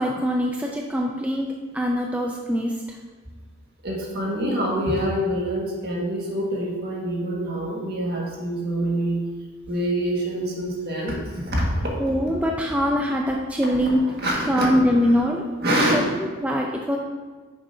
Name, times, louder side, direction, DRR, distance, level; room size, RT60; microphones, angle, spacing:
voice 1, 0.0-3.0 12.0-14.0 14.5-15.4 15.9-16.0 16.4-17.0, equal, 5° right, 0 dB, 0.4 m, -23 dB
voice 2, 3.8-9.2 9.7-11.7 13.8-15.1 15.6-16.0, right 1 dB, 50° right, -3 dB, 1.7 m, -26 dB
9.8 x 7.1 x 2.7 m, 1.4 s
head